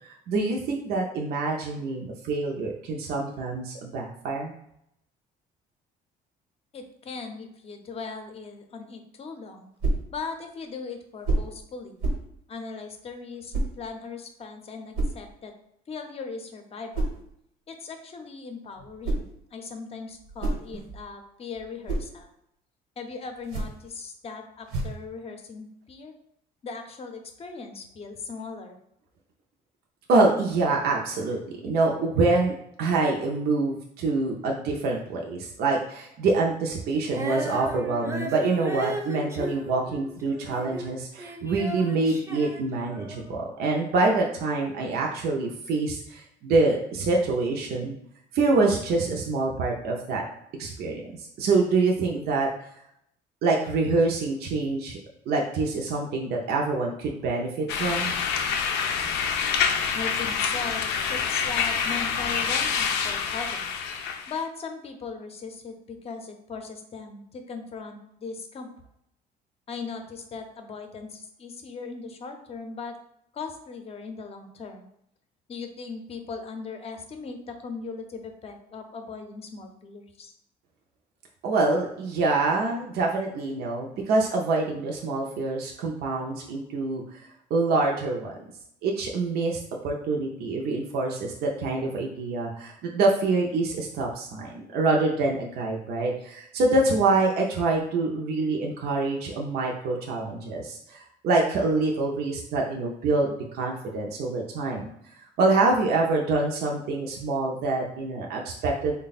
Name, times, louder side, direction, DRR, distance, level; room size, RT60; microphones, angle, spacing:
voice 1, 0.3-4.5 30.1-31.4 31.6-32.5 32.8-48.0 48.3-50.2 50.6-52.5 53.4-55.0 55.3-58.2 81.4-87.2 87.5-88.4 88.8-104.9 105.4-109.0, right 3 dB, 70° right, 0 dB, 0.6 m, -26 dB
voice 2, 6.7-9.7 10.1-12.1 12.5-15.5 15.9-17.2 17.7-22.3 23.0-26.2 26.6-28.8 59.9-63.8 64.3-68.7 69.7-72.9 73.3-74.9 75.5-80.3, left 4 dB, 35° left, 5 dB, 0.6 m, -39 dB
sound 1, 9.8-10.1 11.2-11.6 12.0-12.3 13.5-13.8 14.9-15.2 16.9-17.2 18.8-19.4 20.1-21.1 21.6-22.1 23.4-23.9 24.7-25.1, right 2 dB, 85° right, 1.1 m, -29 dB
Female singing, 37.1-40.9 41.2-43.3, right 1 dB, 15° right, 0.5 m, -36 dB
sound 2, 57.7-64.4, left 6 dB, 90° left, 0.4 m, -27 dB
3.4 x 2.2 x 4.0 m, 0.76 s
cardioid pair, 110°, 17 cm